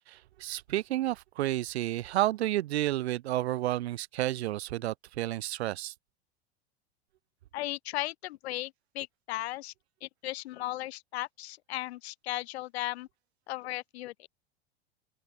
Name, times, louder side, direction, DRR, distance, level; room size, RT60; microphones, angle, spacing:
voice 1, 0.1-5.9, right 15 dB, 80° right, 0.6 m, -31 dB
voice 2, 7.5-9.7 10.0-13.1 13.5-14.3, left 17 dB, 75° left, 0.6 m, -36 dB
open air
hypercardioid pair, 95°, 32 cm